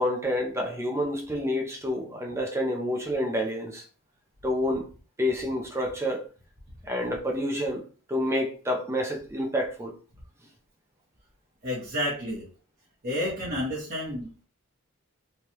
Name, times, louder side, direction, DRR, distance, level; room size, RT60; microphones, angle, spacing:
voice 1, 0.0-3.8 4.4-4.9 5.2-6.3 6.8-7.8 8.1-9.9, left 1 dB, 15° right, 0.5 m, -28 dB
voice 2, 11.6-12.5 13.0-14.3, left 1 dB, 40° right, 1.1 m, -30 dB
3.2 x 2.3 x 2.8 m
head